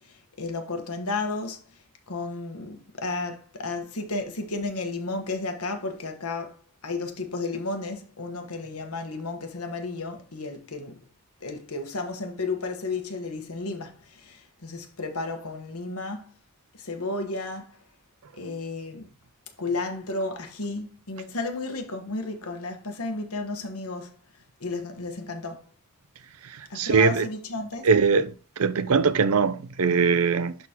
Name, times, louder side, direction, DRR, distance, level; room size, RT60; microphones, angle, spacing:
voice 1, 0.1-1.6 2.1-11.0 11.4-16.3 16.8-17.8 18.3-19.1 19.6-24.1 24.6-25.7 26.7-27.9, left 3 dB, 85° left, 1.4 m, -33 dB
voice 2, 26.7-27.3 27.8-30.5, right 5 dB, 75° right, 0.6 m, -21 dB
11.5 x 4.0 x 3.0 m
head